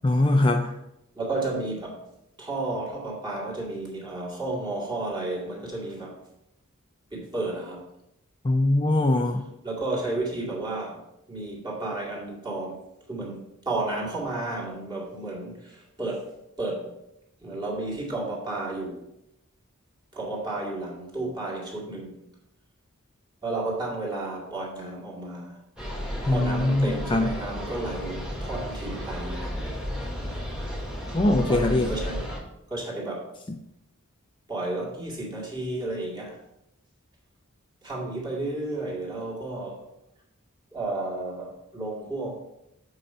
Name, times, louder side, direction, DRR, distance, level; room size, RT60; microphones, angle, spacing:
voice 1, 0.0-0.8 8.4-9.4 26.3-27.3 31.1-31.9, left 2 dB, 20° left, 4 dB, 0.4 m, -22 dB
voice 2, 1.1-2.0 2.4-6.2 7.1-7.8 9.6-11.0 11.3-12.8 13.1-16.3 16.6-16.9 17.4-19.0 20.1-22.2 23.4-25.6 26.2-29.8 31.5-32.3 32.7-33.3 34.5-36.4 37.8-39.8 40.7-42.4, right 2 dB, 20° right, -4 dB, 2.2 m, -32 dB
sound 1, 25.8-32.4, equal, 5° right, 1.5 m, -33 dB
7.8 x 4.8 x 4.3 m, 0.84 s
head